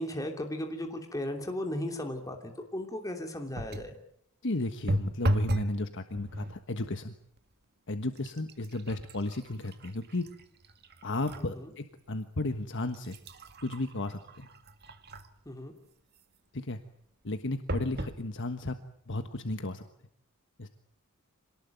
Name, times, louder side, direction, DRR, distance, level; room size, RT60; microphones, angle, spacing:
voice 1, 0.0-4.0 11.4-11.7 15.4-15.7, left 1 dB, 15° left, 3 dB, 3.0 m, -36 dB
sound 1, 3.5-4.0 4.9-5.8 6.1-6.6 7.4-7.5 7.9-11.5 12.0-12.1 12.7-15.5 17.7-18.2 18.9-19.0 19.2-19.3, equal, 50° right, 2.0 m, -35 dB
voice 2, 4.4-7.1 7.9-10.2 11.0-13.2 13.6-14.5 16.5-16.8 17.2-18.8 19.1-19.8 20.6-20.7, left 2 dB, 60° left, 8 dB, 1.4 m, -34 dB
26.5 x 19.5 x 9.3 m, 0.70 s
head